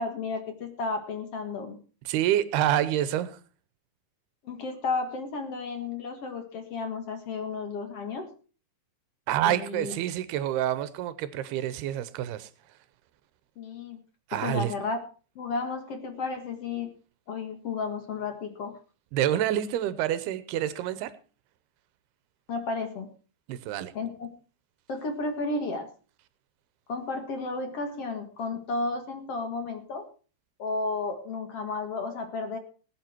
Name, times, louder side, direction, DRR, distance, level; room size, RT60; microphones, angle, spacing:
voice 1, 0.0-1.8 4.4-8.3 9.4-9.9 13.6-14.0 14.4-15.0 15.4-16.9 17.3-18.8 22.5-23.1 23.9-24.3 24.9-25.9 26.9-30.1 30.6-32.6, left 3 dB, 50° left, 6 dB, 2.2 m, -33 dB
voice 2, 2.1-3.4 9.3-12.5 14.3-14.7 19.1-21.1 23.5-23.9, right 12 dB, 90° right, 14 dB, 2.9 m, -27 dB
20.0 x 8.8 x 4.5 m, 0.37 s
omnidirectional pair, 4.5 m